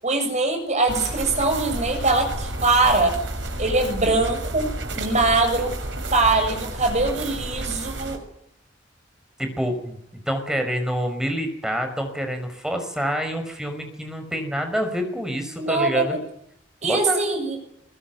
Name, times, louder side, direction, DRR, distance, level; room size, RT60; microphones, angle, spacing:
voice 1, 0.0-3.1 3.6-4.7 4.9-5.8 6.1-8.2 15.6-16.2 16.8-17.6, right 3 dB, 40° right, 5 dB, 7.4 m, -22 dB
sound 1, 0.9-8.2, right 1 dB, 75° right, 6.3 m, -31 dB
voice 2, 9.4-10.0 10.3-16.2 16.8-17.2, equal, 5° right, 6 dB, 5.5 m, -27 dB
22.5 x 20.5 x 9.4 m, 0.75 s
head